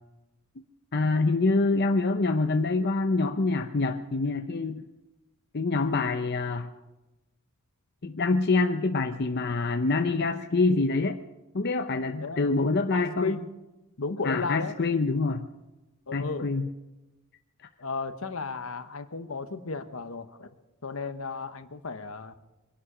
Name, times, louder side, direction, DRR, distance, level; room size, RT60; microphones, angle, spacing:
voice 1, 0.9-4.8 5.5-6.7 8.0-11.2 11.5-13.3 14.2-15.5 16.1-16.7, left 3 dB, 50° left, 6 dB, 0.7 m, -26 dB
voice 2, 12.9-13.5 14.0-14.7 16.1-16.5 17.8-20.5 20.8-22.4, left 4 dB, 70° left, 10 dB, 1.1 m, -34 dB
23.5 x 11.5 x 5.0 m, 1.0 s
head